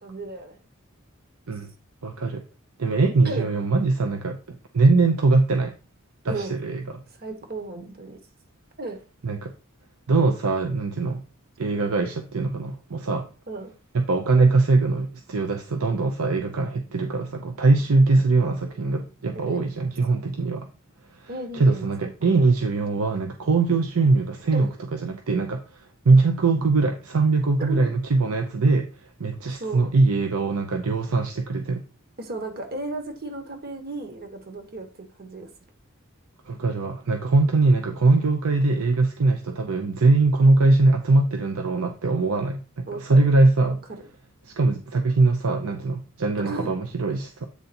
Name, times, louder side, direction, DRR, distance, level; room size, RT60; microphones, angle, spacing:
voice 1, 0.0-0.6 3.2-3.5 6.3-6.6 7.2-8.2 8.8-9.0 13.5-13.7 14.4-14.5 18.1-18.3 19.3-19.6 21.3-22.5 24.5-24.7 27.6-27.9 29.6-29.8 32.2-35.5 42.9-43.2 43.9-44.0 46.4-46.8, right 2 dB, 45° right, 5 dB, 1.4 m, -34 dB
voice 2, 2.0-2.4 2.8-5.7 6.2-6.8 9.2-9.5 10.1-11.2 11.6-13.3 13.9-20.7 21.2-28.9 29.2-31.8 36.5-43.8 44.5-47.5, right 3 dB, 90° right, 5 dB, 0.7 m, -22 dB
8.3 x 3.9 x 4.3 m, 0.34 s
head